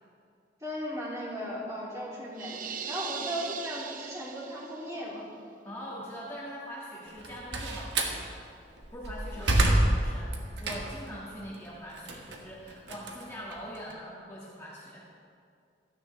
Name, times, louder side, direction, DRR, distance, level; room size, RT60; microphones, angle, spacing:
voice 1, 0.6-5.3 9.3-9.5, equal, 20° right, -7 dB, 3.3 m, -37 dB
sound 1, 2.4-4.9, right 6 dB, 50° right, 0.7 m, -39 dB
voice 2, 5.6-8.4 8.9-15.0, equal, 15° left, -7 dB, 1.8 m, -42 dB
Slam, 7.1-8.2 8.8-11.1 11.5-13.9, right 1 dB, 75° right, 1.5 m, -28 dB
16.0 x 13.5 x 3.3 m, 2.4 s
head